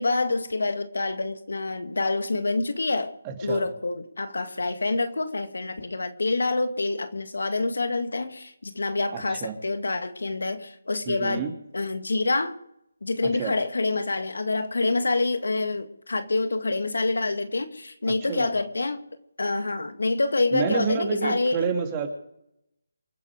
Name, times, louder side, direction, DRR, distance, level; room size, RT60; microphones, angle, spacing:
voice 1, 0.0-3.1 3.4-11.4 11.7-12.5 13.0-19.0 19.4-21.6, left 3 dB, 75° left, 8 dB, 2.0 m, -27 dB
voice 2, 3.2-3.6 9.1-9.5 11.1-11.5 13.4-13.5 18.3-18.5 20.5-22.1, right 7 dB, 20° right, 3 dB, 2.9 m, -29 dB
28.0 x 9.5 x 5.2 m, 0.78 s
figure-of-eight pair, 155°, 0 cm